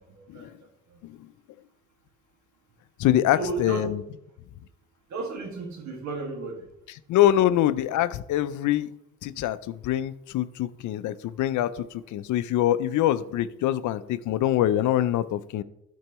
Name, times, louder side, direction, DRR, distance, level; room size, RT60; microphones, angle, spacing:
voice 1, 0.2-0.5 0.9-1.0 3.3-3.9 5.1-6.6, right 4 dB, 65° right, 2 dB, 1.9 m, -33 dB
voice 2, 3.0-4.0 6.9-8.9 9.2-15.6, left 12 dB, 75° left, 15 dB, 0.5 m, -24 dB
12.0 x 4.5 x 3.0 m, 0.82 s
cardioid pair, 90°, 30 cm